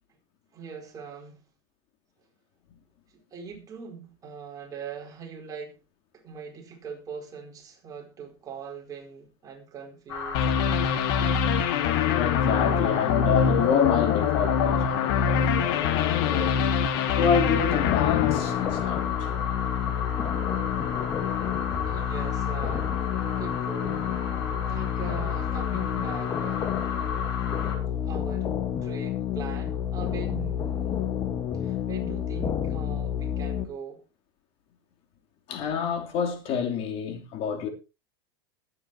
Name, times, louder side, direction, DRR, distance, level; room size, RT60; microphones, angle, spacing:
voice 1, 0.5-1.4 3.1-5.8 6.1-10.6 21.8-24.1 24.7-26.7 28.0-28.5 28.8-31.1 31.5-34.0, right 6 dB, 25° right, 4.6 m, -41 dB
sound 1, 10.1-27.8, left 6 dB, 75° left, 5.6 m, -34 dB
sound 2, 10.3-19.4, left 7 dB, 60° left, 1.8 m, -24 dB
voice 2, 12.0-16.6 17.2-19.3 35.5-37.7, left 7 dB, 45° left, 3.3 m, -28 dB
sound 3, 17.6-33.7, left 9 dB, 30° left, 1.5 m, -29 dB
21.5 x 9.2 x 2.9 m
supercardioid pair, 130°, 13 cm